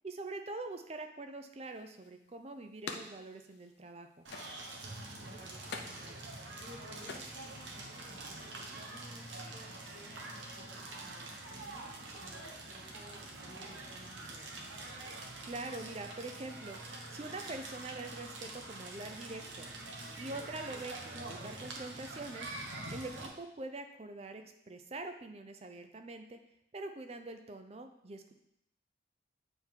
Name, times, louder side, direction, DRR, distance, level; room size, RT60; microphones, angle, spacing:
voice 1, 0.0-4.3 15.5-16.8 17.1-19.7 20.2-22.5 22.9-26.4 26.7-28.3, right 2 dB, 35° right, 7 dB, 0.5 m, -44 dB
sound 1, 1.6-3.9 4.2-5.1 5.5-7.9, left 4 dB, 60° left, 0.6 m, -47 dB
Crackle, 4.2-23.3, right 2 dB, 80° right, 1.1 m, -45 dB
voice 2, 5.0-14.7, equal, 55° right, -2 dB, 1.4 m, -56 dB
7.6 x 3.7 x 4.5 m, 0.78 s
head